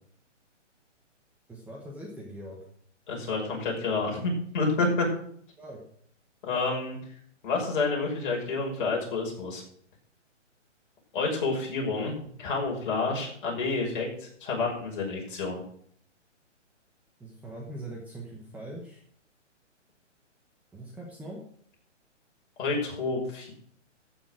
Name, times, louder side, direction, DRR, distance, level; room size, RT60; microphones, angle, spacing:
voice 1, 1.5-2.6 5.6-5.8 17.2-19.0 20.7-21.4, right 1 dB, 5° right, -3 dB, 1.2 m, -41 dB
voice 2, 3.1-5.1 6.4-7.0 7.4-9.6 11.1-15.6 22.6-23.5, left 3 dB, 40° left, -1 dB, 6.1 m, -29 dB
14.5 x 7.2 x 6.4 m, 0.63 s
hypercardioid pair, 160°, 37 cm